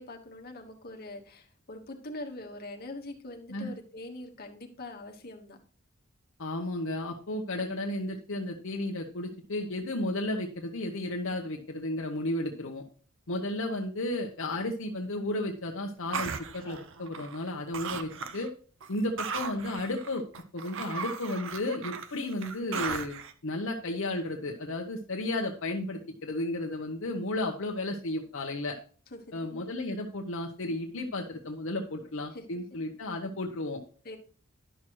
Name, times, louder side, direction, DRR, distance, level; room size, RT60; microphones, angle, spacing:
voice 1, 0.0-5.6 29.1-29.3 32.3-32.4 34.0-34.2, left 2 dB, 45° left, 3 dB, 1.2 m, -43 dB
voice 2, 6.4-12.8 13.3-18.5 18.9-20.2 20.5-23.2 23.4-28.8 29.3-33.8, left 1 dB, 65° left, 2 dB, 0.8 m, -33 dB
sound 1, 16.1-17.5 17.7-18.5 18.8-23.3, right 5 dB, 65° right, 0.7 m, -37 dB
11.0 x 6.1 x 2.9 m, 0.41 s
head